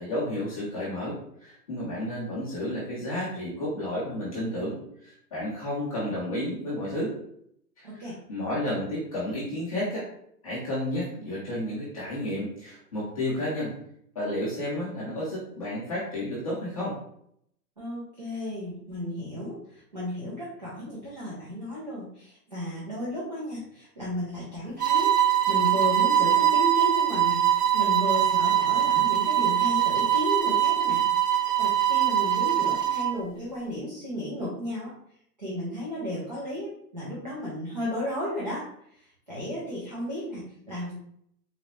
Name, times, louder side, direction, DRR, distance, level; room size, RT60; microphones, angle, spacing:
voice 1, 0.0-4.8 5.0-7.1 7.8-8.0 8.3-10.1 10.4-13.7 14.1-16.9, left 1 dB, 20° left, -9 dB, 0.6 m, -31 dB
voice 2, 7.8-8.2 17.8-27.4 27.7-31.0 31.3-34.9 35.4-40.9, equal, 30° right, -8 dB, 0.4 m, -34 dB
sound 1, 24.8-33.2, right 11 dB, 65° right, 0.7 m, -23 dB
3.9 x 2.2 x 2.9 m, 0.69 s
hypercardioid pair, 170°, 50 cm